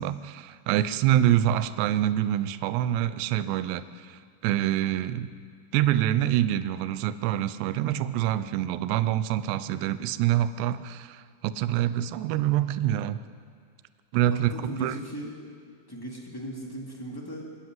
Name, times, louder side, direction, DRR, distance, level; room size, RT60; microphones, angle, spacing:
voice 1, 0.0-5.3 5.7-13.2 14.1-15.0, right 12 dB, 80° right, 13 dB, 2.6 m, -26 dB
voice 2, 14.3-15.3 15.9-17.5, right 1 dB, 10° left, -2 dB, 1.5 m, -37 dB
25.0 x 13.5 x 9.4 m, 2.1 s
omnidirectional pair, 5.6 m